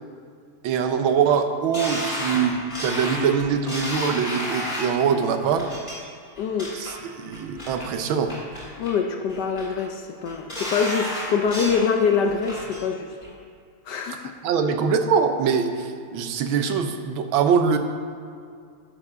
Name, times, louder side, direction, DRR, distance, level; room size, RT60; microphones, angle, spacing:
voice 1, 0.6-5.7 6.7-8.3 14.4-17.8, right 6 dB, 70° right, 7 dB, 1.5 m, -23 dB
sound 1, 1.7-5.0 5.6-5.9 6.4-6.9 7.3-7.9 8.3-9.0 9.3-9.8 10.2-11.9 12.2-12.8 13.2-13.3, left 1 dB, 15° left, 2.8 m, -32 dB
voice 2, 6.4-6.7 8.8-13.1 13.9-14.4, left 6 dB, 70° left, 4 dB, 1.0 m, -24 dB
11.0 x 6.1 x 6.6 m, 2.3 s
omnidirectional pair, 2.4 m